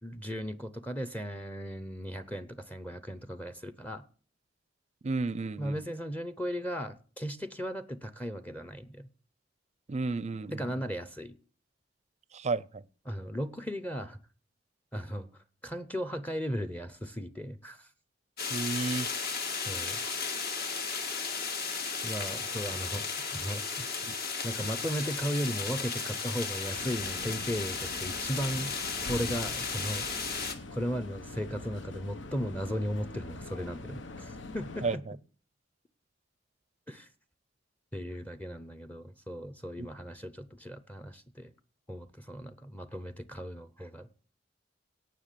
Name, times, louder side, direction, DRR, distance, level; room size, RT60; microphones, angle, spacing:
voice 1, 0.0-4.0 5.6-9.1 10.5-11.4 13.1-14.2 14.9-15.3 15.6-17.9 19.5-20.0 22.0-23.9 24.4-28.8 29.1-30.1 30.7-35.0 36.9-37.1 37.9-41.5 41.9-44.1, equal, 10° left, 0.7 m, -36 dB
voice 2, 5.0-5.8 9.9-10.8 12.3-12.8 18.5-19.1 24.1-24.2 34.8-35.2 39.8-39.9, right 3 dB, 35° right, 0.5 m, -33 dB
sound 1, 18.4-30.6, left 5 dB, 55° left, 1.9 m, -35 dB
sound 2, 26.7-35.0, left 2 dB, 75° left, 1.0 m, -44 dB
17.5 x 6.1 x 6.7 m
head